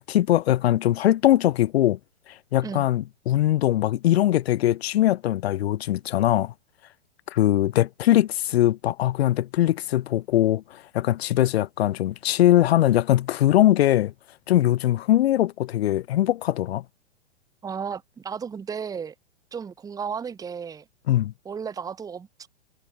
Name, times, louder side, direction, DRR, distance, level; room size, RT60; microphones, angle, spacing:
voice 1, 0.0-2.0 2.5-6.5 7.3-14.1 14.5-16.8 21.1-21.3, left 13 dB, 65° left, 0.5 m, -21 dB
voice 2, 17.6-19.1 19.5-20.8 21.4-22.5, right 6 dB, 10° right, 1.0 m, -34 dB
figure-of-eight pair, 110°, 33 cm